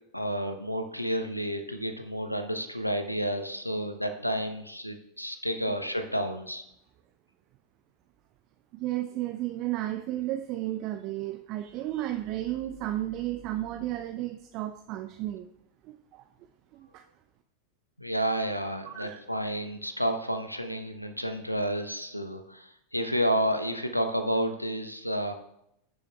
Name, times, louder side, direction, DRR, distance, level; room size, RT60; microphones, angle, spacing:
voice 1, 0.1-6.6 18.0-25.3, equal, 90° left, 8 dB, 0.8 m, -30 dB
voice 2, 8.7-15.5 15.8-16.3 16.7-17.0 18.9-19.2, right 14 dB, 40° right, 6 dB, 0.5 m, -33 dB
15.5 x 7.0 x 2.3 m, 0.78 s
figure-of-eight pair, 90°, 0 cm